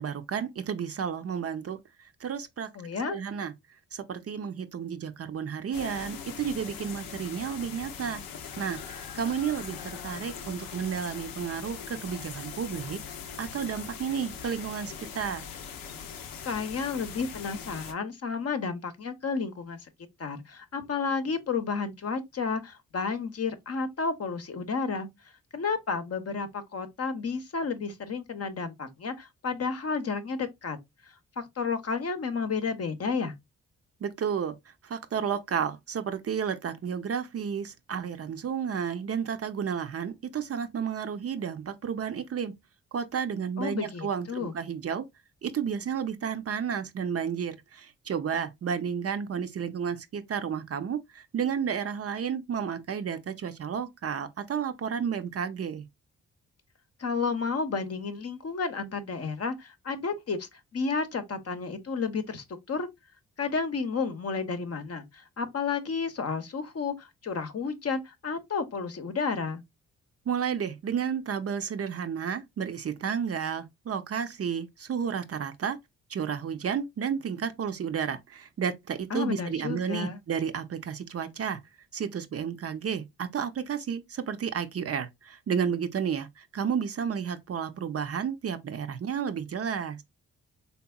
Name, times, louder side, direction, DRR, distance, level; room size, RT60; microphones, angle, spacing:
voice 1, 0.0-2.7 3.1-3.5 3.9-8.2 8.6-13.0 13.4-15.4 34.0-42.5 42.9-45.1 45.4-55.9 70.3-75.8 76.1-81.6 81.9-90.0, right 7 dB, 45° right, 0.5 m, -32 dB
voice 2, 2.7-3.2 16.4-19.8 20.2-25.1 25.5-30.8 31.4-33.3 43.6-44.5 57.0-62.9 63.4-69.6 79.1-80.2, left 5 dB, 45° left, 0.7 m, -31 dB
sound 1, 5.7-17.9, left 7 dB, 90° left, 0.6 m, -41 dB
3.4 x 2.9 x 2.2 m
supercardioid pair, 50°, 34 cm